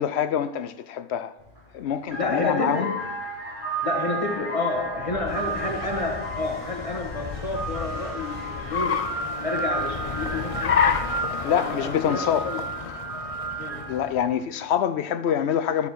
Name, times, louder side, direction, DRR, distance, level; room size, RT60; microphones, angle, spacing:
voice 1, 0.0-1.3 1.7-2.9 11.4-12.5 13.9-15.9, left 9 dB, 70° left, 0.8 m, -25 dB
sound 1, 1.4-1.6 2.0-14.1, right 2 dB, 45° right, 3.6 m, -33 dB
voice 2, 2.1-3.0 3.8-11.1 11.5-12.6 13.6-13.9, left 2 dB, 30° left, 1.7 m, -30 dB
Car, 4.8-14.3, left 6 dB, 45° left, 0.4 m, -31 dB
sound 2, 5.3-12.4, equal, 15° right, 1.8 m, -47 dB
13.0 x 7.0 x 4.7 m
omnidirectional pair, 1.2 m